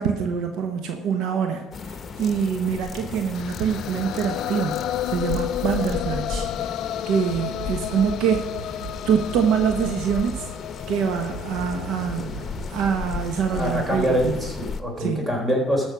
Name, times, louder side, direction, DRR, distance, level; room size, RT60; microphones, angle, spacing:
voice 1, 0.0-6.8 7.1-10.4 10.9-14.4 15.0-15.3, right 7 dB, 75° right, 5 dB, 1.2 m, -25 dB
sound 1, 1.7-14.8, left 5 dB, 35° left, 0.9 m, -35 dB
sound 2, 3.3-13.4, left 12 dB, 70° left, 0.3 m, -32 dB
sound 3, 5.3-6.6 7.3-13.3, right 5 dB, 55° right, 1.8 m, -40 dB
voice 2, 13.5-15.9, equal, 20° right, 1 dB, 4.0 m, -24 dB
13.0 x 6.2 x 6.2 m, 1.1 s
supercardioid pair, 80°, 0 cm